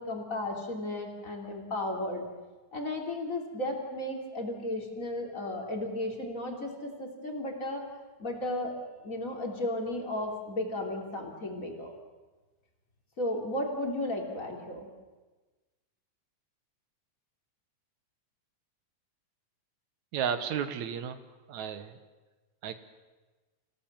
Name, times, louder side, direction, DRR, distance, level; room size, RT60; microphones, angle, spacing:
voice 1, 0.0-2.3 2.7-7.9 8.2-8.8 9.0-11.9 13.2-14.9, left 1 dB, 25° left, 1 dB, 3.3 m, -34 dB
voice 2, 20.1-21.2 21.5-22.0 22.6-22.7, right 8 dB, 75° right, 10 dB, 2.5 m, -33 dB
27.5 x 17.0 x 7.5 m, 1.2 s
omnidirectional pair, 3.4 m